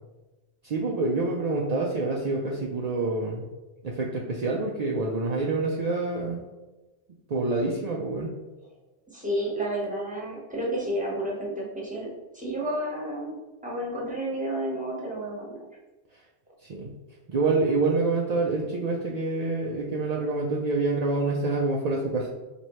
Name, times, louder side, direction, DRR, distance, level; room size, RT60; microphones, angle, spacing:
voice 1, 0.6-3.4 3.8-6.4 7.3-8.3 16.6-16.9 17.3-22.3, right 3 dB, 55° right, -2 dB, 0.4 m, -27 dB
voice 2, 9.1-12.1 12.3-13.4 13.6-15.5, right 1 dB, 5° right, -5 dB, 1.0 m, -31 dB
4.3 x 3.0 x 3.1 m, 1.1 s
omnidirectional pair, 1.2 m